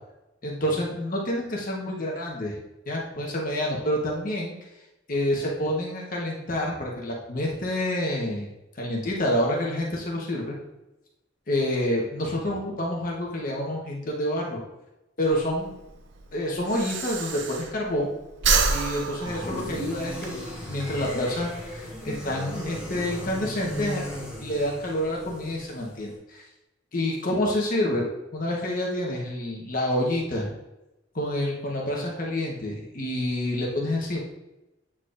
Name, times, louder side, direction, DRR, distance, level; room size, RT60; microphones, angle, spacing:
voice 1, 0.4-2.6 2.9-4.5 5.1-8.5 8.8-10.5 11.5-14.6 15.2-15.7 16.3-18.1 18.7-20.4 20.7-24.0 24.4-26.4 26.9-28.1 28.3-30.5 31.1-34.2, left 1 dB, 50° left, -2 dB, 1.1 m, -28 dB
Breathing, 15.2-18.0 18.3-20.3, right 4 dB, 70° right, 0.6 m, -27 dB
sound 1, 19.2-26.1, equal, 5° right, 2.1 m, -37 dB
8.5 x 4.6 x 2.5 m, 0.95 s
head